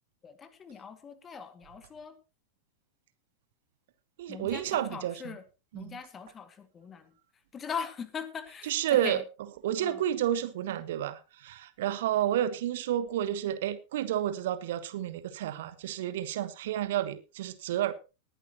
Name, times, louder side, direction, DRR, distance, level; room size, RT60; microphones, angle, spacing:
voice 1, 0.2-2.1 4.3-5.4 5.7-7.1 7.5-9.2 9.8-10.0, left 6 dB, 20° left, 2.0 m, -41 dB
voice 2, 4.2-5.4 5.7-6.0 8.6-9.2 9.6-17.9, right 11 dB, 55° right, 1.2 m, -30 dB
19.5 x 11.0 x 2.9 m
figure-of-eight pair, 90°, 0 cm